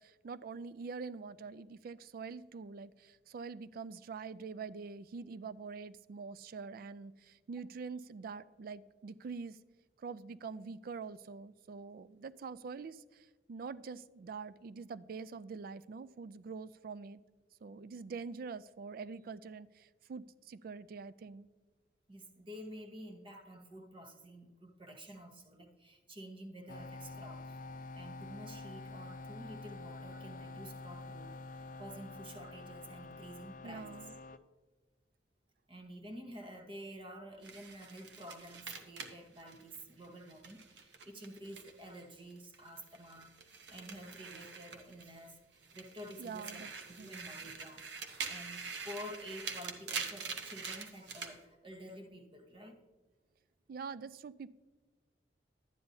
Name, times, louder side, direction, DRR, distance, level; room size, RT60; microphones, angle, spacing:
voice 1, 0.0-9.6 10.0-17.2 17.6-21.5 33.6-34.1 46.2-46.7 47.0-47.1 53.7-54.5, right 5 dB, 55° right, 16 dB, 0.3 m, -45 dB
voice 2, 22.1-27.6 27.9-34.1 35.7-52.8, equal, 30° right, 4 dB, 1.0 m, -50 dB
sound 1, 26.7-34.4, left 3 dB, 50° left, 0.4 m, -47 dB
sound 2, 37.4-42.0 42.3-45.3 45.6-51.3, right 5 dB, 85° right, 1.0 m, -45 dB
11.5 x 9.5 x 2.7 m, 1.3 s
head